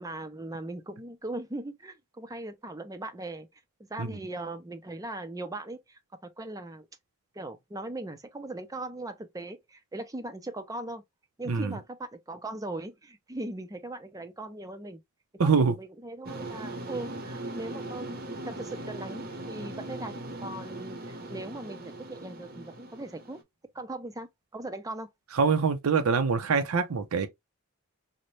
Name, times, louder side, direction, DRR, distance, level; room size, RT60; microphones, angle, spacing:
voice 1, 0.0-3.6 3.9-6.9 7.3-11.0 11.4-15.0 15.4-23.4 23.7-24.3 24.5-25.1, right 2 dB, 15° right, 0.5 m, -39 dB
voice 2, 15.4-15.7 25.3-27.3, right 5 dB, 85° right, 0.5 m, -24 dB
sound 1, 16.2-23.4, right 1 dB, 45° right, 0.7 m, -39 dB
3.9 x 2.1 x 3.1 m
head